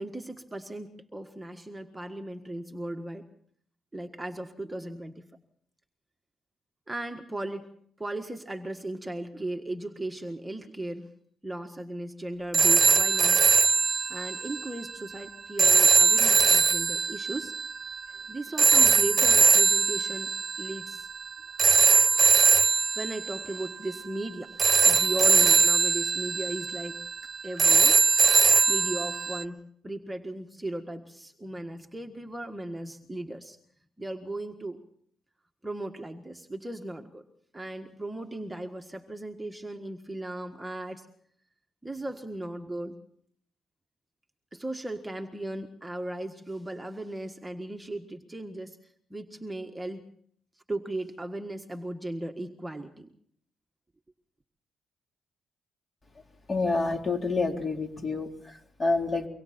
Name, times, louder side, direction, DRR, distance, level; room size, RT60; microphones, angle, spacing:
voice 1, 0.0-3.3 3.9-5.3 6.9-7.7 8.0-11.1 11.4-13.5 14.1-17.5 18.1-20.3 20.6-21.1 22.9-27.0 27.4-28.0 28.7-33.6 34.0-34.8 35.6-37.2 37.5-41.1 41.8-42.9 44.5-50.0 50.7-53.1, right 1 dB, 10° right, 4 dB, 1.6 m, -37 dB
sound 1, 12.5-29.4, right 5 dB, 40° right, 1.3 m, -22 dB
voice 2, 56.5-59.3, left 3 dB, 30° left, 3 dB, 3.7 m, -28 dB
24.5 x 24.0 x 4.4 m, 0.63 s
cardioid pair, 90°, 0 cm